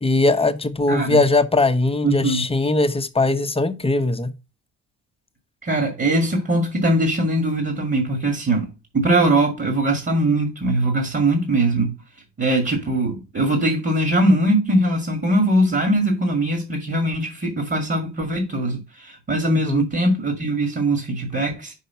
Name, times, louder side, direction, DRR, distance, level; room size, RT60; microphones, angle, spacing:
voice 1, 0.0-4.3 19.5-19.8, left 2 dB, 20° left, 1.0 m, -20 dB
voice 2, 0.9-1.2 2.0-2.5 5.6-12.0 12.4-21.7, right 1 dB, 35° right, 2.1 m, -21 dB
5.7 x 5.1 x 5.6 m
cardioid pair, 90°, 30 cm